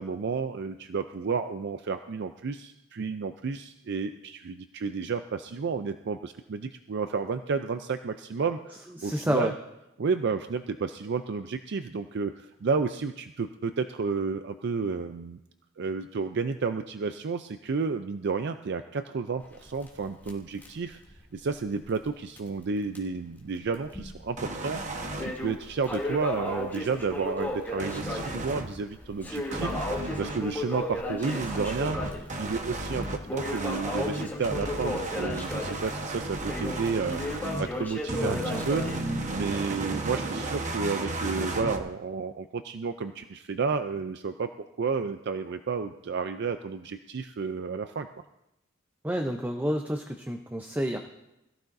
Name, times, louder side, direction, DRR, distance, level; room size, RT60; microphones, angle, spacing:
voice 1, 0.0-9.5 10.0-15.4 15.8-21.0 21.3-44.5 44.8-48.2, right 4 dB, 55° right, 9 dB, 0.4 m, -31 dB
voice 2, 9.0-9.5 38.2-38.6 49.0-51.0, equal, 10° right, 4 dB, 0.6 m, -29 dB
Crackle, 19.4-22.1 22.4-22.5 23.0-23.1 23.7-24.3 24.7-39.0, left 1 dB, 10° left, 2.6 m, -35 dB
sound 1, 24.4-25.2 27.8-28.7 29.5-30.4 31.2-37.7 38.1-41.8, right 2 dB, 35° right, 1.2 m, -34 dB
21.0 x 14.5 x 2.6 m, 0.92 s
head